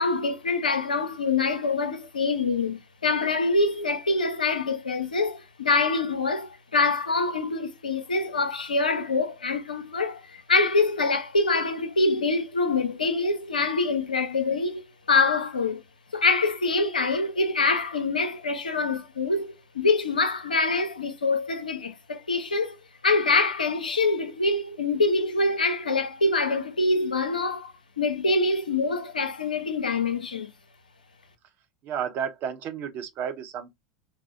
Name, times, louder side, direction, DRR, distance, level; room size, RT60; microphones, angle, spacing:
voice 1, 0.0-15.8 16.1-22.8 23.0-30.5, left 3 dB, 85° left, 0.6 m, -25 dB
voice 2, 31.8-33.7, right 8 dB, 45° right, 0.8 m, -32 dB
4.4 x 2.1 x 2.4 m
figure-of-eight pair, 85°, 4 cm